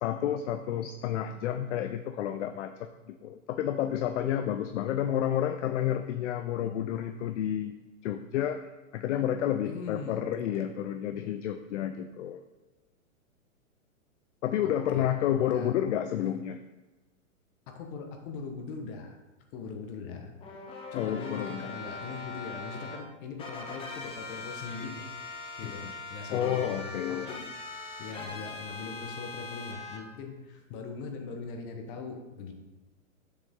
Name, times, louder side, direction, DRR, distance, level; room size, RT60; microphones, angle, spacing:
voice 1, 0.0-7.8 8.0-12.4 14.4-16.6 20.9-21.8 25.6-25.9 26.3-27.3, left 10 dB, 60° left, 8 dB, 0.6 m, -30 dB
voice 2, 9.6-10.2 14.6-15.1 15.5-15.7 17.7-19.2 19.5-20.3 20.9-25.1 25.6-27.5 28.0-32.5, left 5 dB, 40° left, 4 dB, 1.3 m, -40 dB
sound 1, 20.4-23.0 23.4-30.0, left 3 dB, 15° left, 0.7 m, -41 dB
7.1 x 6.9 x 3.7 m, 1.1 s
hypercardioid pair, 130°, 42 cm